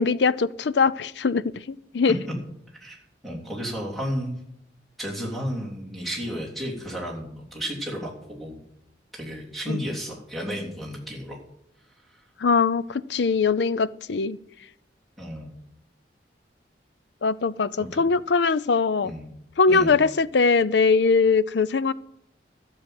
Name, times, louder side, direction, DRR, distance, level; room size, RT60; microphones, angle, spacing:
voice 1, 0.0-1.4 1.7-2.2 9.7-9.8 12.4-14.4 17.2-19.1 19.6-21.9, left 4 dB, 70° left, 17 dB, 0.5 m, -21 dB
voice 2, 2.7-4.3 5.0-8.6 9.1-11.4 12.0-12.2 15.2-15.5 17.8-18.0 19.0-19.3 19.7-20.0, equal, ahead, -2 dB, 3.3 m, -33 dB
13.0 x 7.4 x 7.7 m, 0.78 s
head